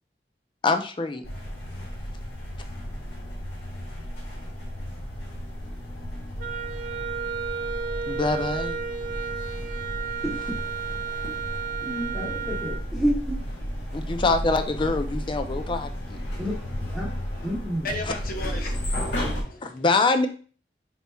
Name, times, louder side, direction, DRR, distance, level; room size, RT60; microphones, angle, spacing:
voice 1, 0.6-1.2 8.1-8.8 13.9-16.2 19.6-20.3, left 3 dB, 30° left, 0.4 m, -24 dB
sound 1, 1.2-19.4, equal, 85° left, 1.6 m, -33 dB
Wind instrument woodwind instrument, 6.4-12.9, right 6 dB, 50° right, 0.3 m, -33 dB
voice 2, 11.8-13.4 16.4-16.5 16.8-17.1 17.4-17.9, equal, 5° right, 1.0 m, -29 dB
voice 3, 17.8-19.9, left 1 dB, 55° left, 0.9 m, -36 dB
4.4 x 4.1 x 2.3 m
head